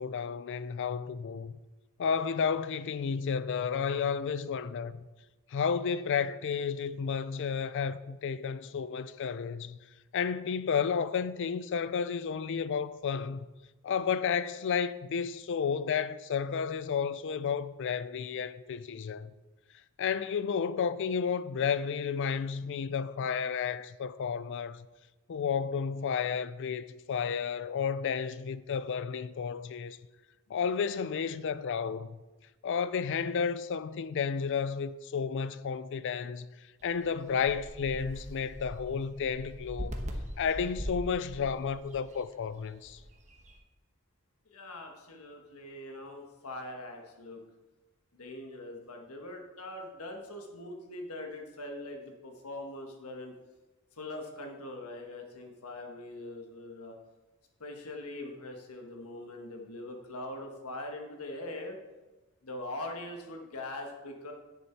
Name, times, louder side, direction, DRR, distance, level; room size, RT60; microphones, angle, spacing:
voice 1, 0.0-1.6 2.0-5.0 5.5-9.8 10.1-13.4 13.8-19.3 20.0-24.9 25.3-30.0 30.5-32.2 32.6-36.5 36.8-40.0 40.4-43.0, left 6 dB, 55° left, 0.4 m, -32 dB
sound 1, 36.8-43.6, equal, 35° right, 1.1 m, -42 dB
voice 2, 44.5-47.4 48.1-53.3 54.0-56.9 57.6-61.8 62.4-64.3, left 1 dB, 80° left, 1.4 m, -42 dB
9.7 x 7.0 x 4.5 m
head